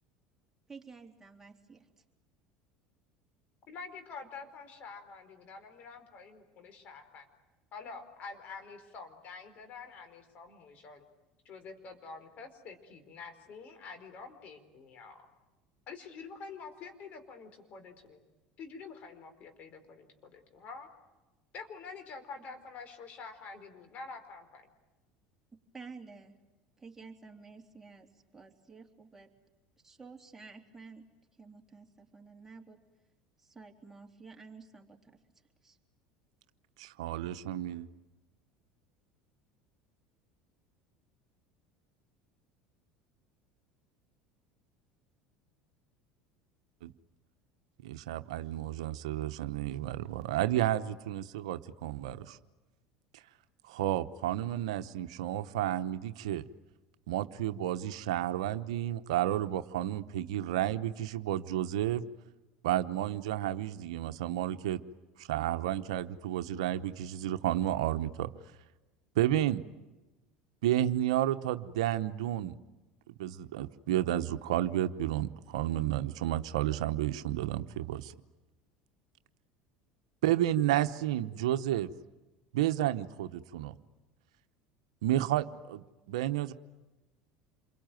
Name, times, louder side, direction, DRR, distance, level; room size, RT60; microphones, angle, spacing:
voice 1, 0.7-1.9 25.7-26.4 26.8-29.3 29.8-31.0 31.4-32.8 33.4-35.2 35.6-35.8, right 4 dB, 10° right, 1 dB, 3.5 m, -51 dB
voice 2, 3.7-7.3 7.7-11.1 11.4-15.2 15.9-18.2 18.6-20.9 21.5-24.7, left 4 dB, 50° left, 7 dB, 4.6 m, -47 dB
voice 3, 36.8-37.9 46.8-46.9 47.8-52.4 53.7-56.4 57.1-62.0 62.6-64.8 65.2-68.3 69.1-69.6 70.6-72.6 73.2-78.1 80.2-81.9 82.5-83.8 85.0-86.5, right 13 dB, 80° right, 10 dB, 0.9 m, -31 dB
28.0 x 23.0 x 9.2 m, 1.1 s
hypercardioid pair, 85°, 3 cm